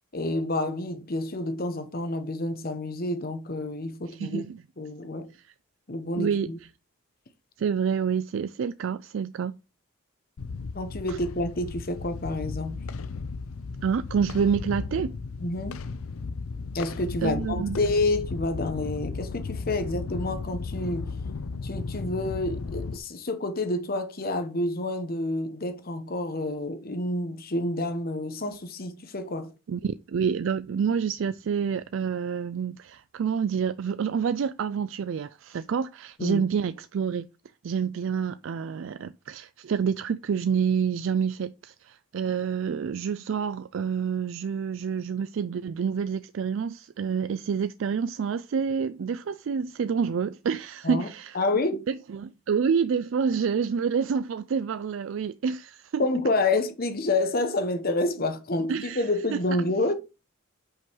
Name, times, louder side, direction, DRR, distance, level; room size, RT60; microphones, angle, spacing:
voice 1, 0.1-4.4 4.8-5.3 5.9-6.6 10.7-12.8 15.4-15.8 16.7-21.1 21.6-29.5 36.2-36.4 50.8-51.1 51.3-51.9 56.0-59.9, left 2 dB, 45° left, 1.0 m, -28 dB
voice 2, 4.1-4.6 6.2-6.5 7.6-9.6 11.1-11.2 13.8-15.1 17.2-17.8 29.7-37.3 37.6-51.4 51.9-56.0 58.7-59.0, right 6 dB, 65° right, 0.3 m, -28 dB
sound 1, 10.4-23.0, left 4 dB, 90° left, 0.5 m, -35 dB
5.5 x 5.3 x 4.6 m
head